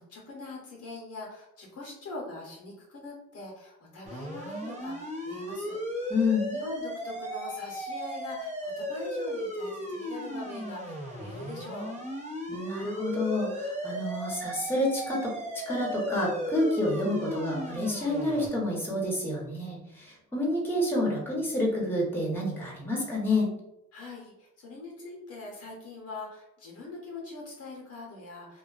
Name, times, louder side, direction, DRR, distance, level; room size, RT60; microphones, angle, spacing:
voice 1, 0.0-11.9 23.9-28.6, left 2 dB, 55° left, -2 dB, 0.8 m, -43 dB
sound 1, 4.1-18.5, equal, 25° right, 0.6 m, -36 dB
voice 2, 6.1-6.5 12.5-15.3 15.7-23.5, left 1 dB, 5° left, -4 dB, 0.9 m, -29 dB
2.4 x 2.2 x 2.4 m, 0.87 s
cardioid pair, 90°, 30 cm